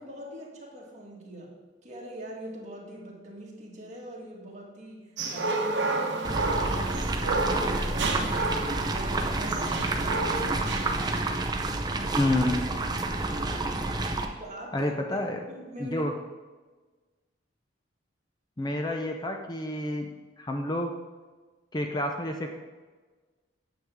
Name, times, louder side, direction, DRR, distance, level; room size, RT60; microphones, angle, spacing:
voice 1, 0.0-1.6 1.8-8.5 8.9-11.2 14.4-14.9 15.5-16.1, right 1 dB, 40° right, -3 dB, 1.9 m, -42 dB
sound-yard-italy-dog-bird, 5.2-11.2, right 2 dB, 70° right, 1.0 m, -31 dB
boiling.water, 6.2-14.3, right 2 dB, 20° right, 0.6 m, -29 dB
voice 2, 12.2-12.5 14.7-15.4 15.8-16.1 18.6-20.1 20.4-20.9 21.7-22.5, left 1 dB, 20° left, 3 dB, 0.5 m, -29 dB
9.1 x 7.2 x 3.6 m, 1.3 s
head